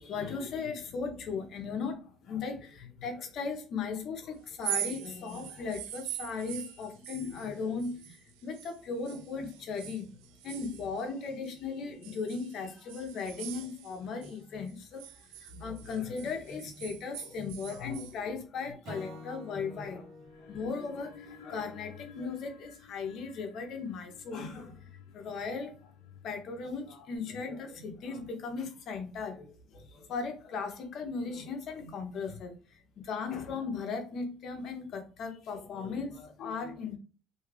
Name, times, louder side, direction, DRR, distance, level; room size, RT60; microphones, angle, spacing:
voice 1, 0.0-10.1 10.4-20.1 20.4-25.9 26.2-37.0, left 5 dB, 55° left, 5 dB, 0.8 m, -37 dB
sound 1, 4.5-8.8 9.1-11.6 12.0-14.4 14.7-18.2, right 12 dB, 85° right, 0.3 m, -42 dB
Acoustic guitar / Strum, 18.8-22.2, left 1 dB, 60° right, 1.1 m, -48 dB
sound 2, 20.2-27.2, left 7 dB, 85° left, 0.3 m, -54 dB
2.7 x 2.3 x 3.3 m, 0.36 s
supercardioid pair, 85°, 0 cm